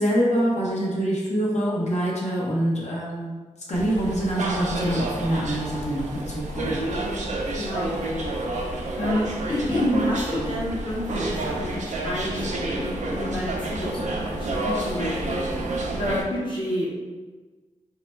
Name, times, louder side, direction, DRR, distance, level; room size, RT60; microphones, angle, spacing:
voice 1, 0.0-3.4 3.7-6.8, right 1 dB, 65° left, -5 dB, 1.0 m, -25 dB
sound 1, 3.7-16.2, right 2 dB, 75° right, 0.5 m, -29 dB
voice 2, 7.6-16.9, left 1 dB, 40° left, -6 dB, 0.8 m, -29 dB
3.8 x 2.2 x 4.3 m, 1.3 s
wide cardioid pair, 105°, 12 cm